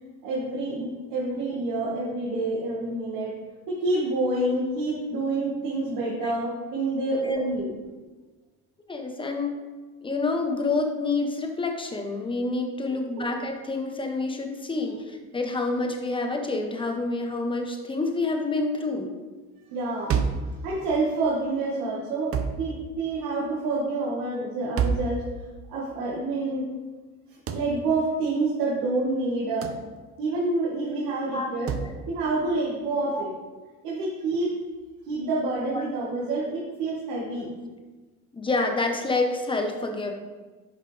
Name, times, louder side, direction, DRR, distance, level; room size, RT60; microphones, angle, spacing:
voice 1, 0.2-3.4 3.7-7.7 12.9-13.3 14.9-15.0 19.7-20.1 20.6-25.2 25.7-26.7 27.5-29.7 30.2-31.7 32.1-33.3 33.8-34.6 35.1-37.5, right 2 dB, 80° right, -5 dB, 1.9 m, -28 dB
voice 2, 7.0-7.4 8.9-9.5 10.0-19.1 31.3-31.5 31.8-31.9 32.5-32.6 33.1-33.2 35.7-35.8 38.3-40.1, left 3 dB, 15° left, 3 dB, 1.1 m, -28 dB
sound 1, 20.1-20.5 22.3-22.6 24.8-25.1 27.5-27.7 29.6-29.9 31.7-31.9, right 6 dB, 40° right, 0.8 m, -26 dB
10.5 x 5.8 x 3.4 m, 1.3 s
cardioid pair, 120°, 34 cm